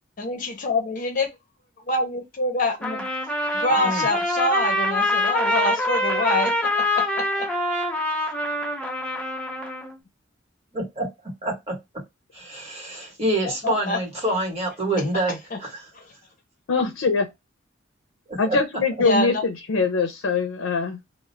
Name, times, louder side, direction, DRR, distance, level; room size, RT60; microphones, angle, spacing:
voice 1, 0.2-1.3 1.8-3.1 3.5-7.5 13.6-14.0 15.5-15.6 15.9-16.1 19.0-19.4, left 2 dB, 45° left, 0.7 m, -26 dB
Trumpet, 2.8-9.9, left 1 dB, 5° left, 0.5 m, -25 dB
voice 2, 3.7-4.0 10.7-12.0 12.3-15.7 18.3-18.6, right 1 dB, 30° right, 1.1 m, -27 dB
voice 3, 16.7-17.3 18.4-21.0, left 4 dB, 80° left, 0.5 m, -23 dB
2.3 x 2.0 x 3.1 m
head